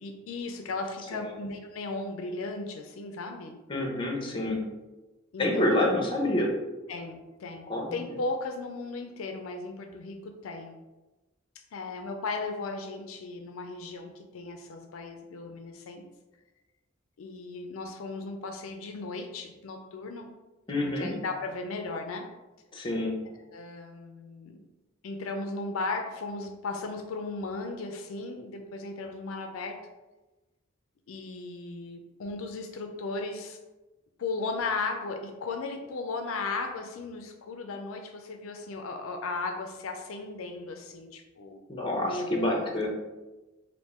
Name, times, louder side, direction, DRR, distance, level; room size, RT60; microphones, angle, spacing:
voice 1, 0.0-3.6 5.3-5.7 6.9-10.8 11.7-16.0 17.2-20.3 21.0-22.3 23.5-24.6 25.0-29.8 31.1-33.6 34.2-41.6 41.9-42.7, left 3 dB, 80° left, 4 dB, 0.4 m, -36 dB
voice 2, 3.7-4.6 5.4-6.5 7.7-8.0 20.7-21.1 22.7-23.1 41.7-42.9, left 1 dB, 25° left, 0 dB, 0.8 m, -27 dB
3.5 x 2.6 x 4.2 m, 1.1 s
head